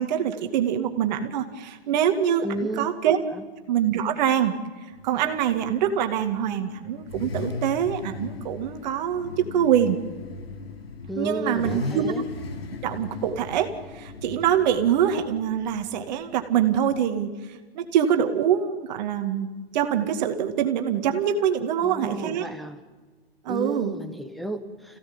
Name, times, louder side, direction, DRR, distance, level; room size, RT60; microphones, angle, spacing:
voice 1, 0.0-3.2 3.7-4.5 5.0-10.0 11.2-12.1 12.8-19.5 19.7-22.5 23.4-23.9, right 9 dB, 45° right, 6 dB, 2.2 m, -24 dB
voice 2, 2.4-2.9 3.3-3.4 11.1-12.2 21.8-22.8 23.5-25.0, right 1 dB, ahead, 8 dB, 1.6 m, -32 dB
Car / Idling / Accelerating revving vroom, 4.9-17.0, left 4 dB, 70° left, 2.4 m, -38 dB
26.5 x 16.5 x 8.9 m, 1.3 s
hypercardioid pair, 130°, 32 cm